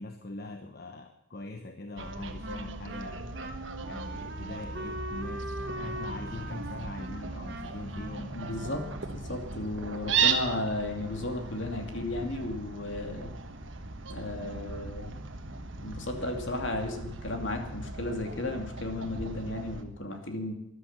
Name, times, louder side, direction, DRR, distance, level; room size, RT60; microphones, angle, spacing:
voice 1, 0.0-3.4 3.8-8.3, left 2 dB, 50° left, 6 dB, 1.0 m, -42 dB
Wind instrument woodwind instrument, 1.9-9.2, right 1 dB, 55° right, 1.5 m, -41 dB
Fowl, 2.0-19.8, right 5 dB, 70° right, 1.4 m, -36 dB
voice 2, 8.1-13.3 14.1-15.2 15.8-20.5, left 2 dB, 65° left, 3 dB, 2.7 m, -34 dB
13.5 x 11.5 x 7.4 m, 0.84 s
head